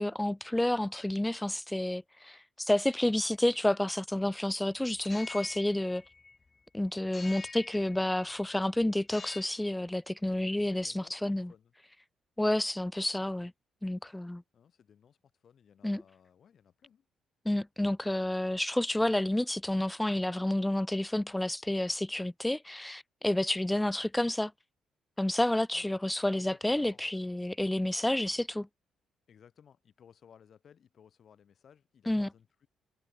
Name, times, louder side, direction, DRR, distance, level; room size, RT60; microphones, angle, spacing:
voice 1, 0.0-6.0 6.7-11.5 12.4-13.5 13.8-14.4 15.8-16.0 17.4-24.5 25.2-28.7 32.1-32.3, left 1 dB, 10° left, 0.5 m, -30 dB
sound 1, 5.0-6.6 7.1-8.5 9.0-9.7, left 4 dB, 30° left, 2.3 m, -47 dB
voice 2, 10.3-11.7 14.5-17.1 18.1-18.6 25.7-27.1 28.3-28.4 29.3-32.7, left 8 dB, 55° left, 5.0 m, -60 dB
cardioid pair, 90°, 0 cm